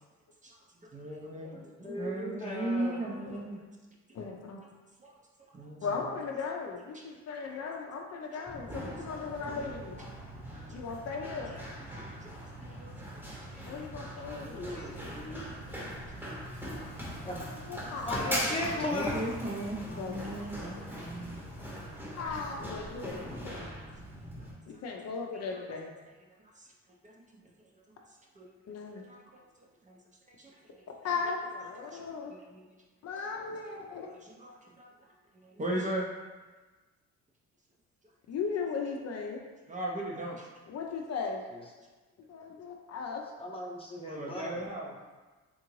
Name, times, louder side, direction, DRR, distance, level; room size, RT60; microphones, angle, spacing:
voice 1, 0.4-3.6 5.0-5.2 5.5-5.9 6.9-7.0 7.5-7.8 10.5-10.8 11.5-12.9 13.2-13.7 14.1-15.4 15.9-16.9 17.8-18.3 18.8-21.8 24.2-24.5 25.3-25.8 26.4-26.7 27.0-27.5 28.4-28.5 29.1-29.4 29.8-30.0 30.3-30.9 31.2-31.3 31.9-32.7 33.2-33.3 34.0-34.9 35.3-36.1 39.7-40.5 44.0-44.9, right 1 dB, 25° right, -2 dB, 0.5 m, -40 dB
voice 2, 1.4-3.0 14.3-15.8 17.2-17.4 18.0-19.2 41.5-41.6 43.4-44.6, left 1 dB, 20° left, -3 dB, 0.7 m, -37 dB
voice 3, 4.1-4.6 5.8-10.0 10.7-11.5 13.7-14.7 17.5-18.5 18.8-18.9 20.0-20.1 22.2-23.7 24.7-25.9 28.7-29.1 31.0-32.3 33.0-34.1 38.3-39.4 40.7-41.4 42.3-43.2, left 5 dB, 55° left, 1 dB, 0.5 m, -37 dB
Run, 8.5-24.5, equal, 5° right, 0.8 m, -40 dB
sound 1, 9.3-22.6, right 6 dB, 65° right, 0.6 m, -54 dB
3.7 x 2.5 x 3.0 m, 1.3 s
cardioid pair, 90°, 30 cm